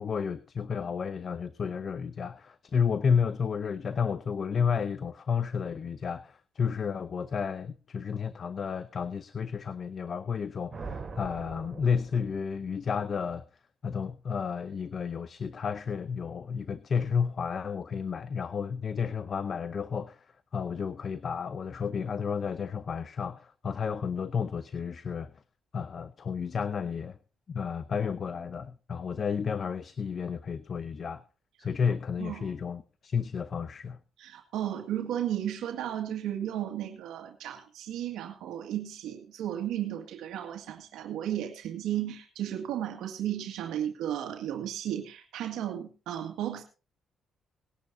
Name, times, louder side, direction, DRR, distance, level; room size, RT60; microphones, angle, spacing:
voice 1, 0.0-13.4 13.8-25.4 25.7-27.2 27.5-31.2 31.6-34.0, left 6 dB, 45° left, 0.7 m, -31 dB
sound 1, 10.7-12.7, right 4 dB, 35° right, 3.5 m, -42 dB
voice 2, 32.2-32.5 34.2-46.6, right 11 dB, 85° right, 1.9 m, -34 dB
20.0 x 10.5 x 2.8 m
cardioid pair, 90°, 0 cm